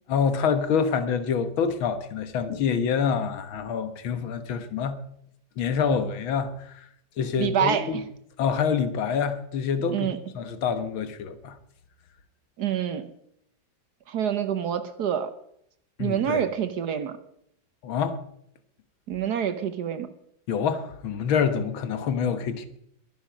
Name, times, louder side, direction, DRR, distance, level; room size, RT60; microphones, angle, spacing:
voice 1, 0.1-5.0 5.6-6.8 7.2-8.0 8.4-10.1 10.3-11.6 16.0-16.4 17.8-18.2 20.5-22.7, left 6 dB, 85° left, 2.0 m, -26 dB
voice 2, 7.4-8.0 9.9-10.2 12.6-13.1 14.1-15.3 16.0-17.2 19.1-20.1, right 9 dB, 60° right, 1.3 m, -27 dB
21.5 x 10.5 x 5.1 m
omnidirectional pair, 2.2 m